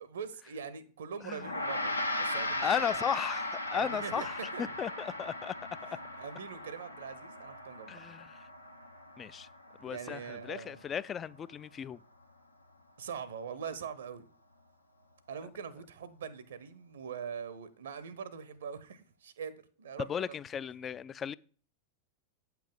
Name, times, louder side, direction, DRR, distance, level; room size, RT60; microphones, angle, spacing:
voice 1, 0.0-3.0 3.7-4.3 4.5-4.8 5.9-8.0 9.8-10.8 13.0-14.3 15.3-20.4, right 6 dB, 65° right, 0.7 m, -43 dB
Gong, 1.4-10.9, left 1 dB, 85° left, 0.7 m, -38 dB
voice 2, 2.6-5.5 5.8-5.9 7.9-8.5 9.2-9.5 9.8-12.0 20.0-21.3, left 8 dB, 25° left, 0.3 m, -36 dB
8.5 x 5.8 x 3.8 m
figure-of-eight pair, 90°, 0 cm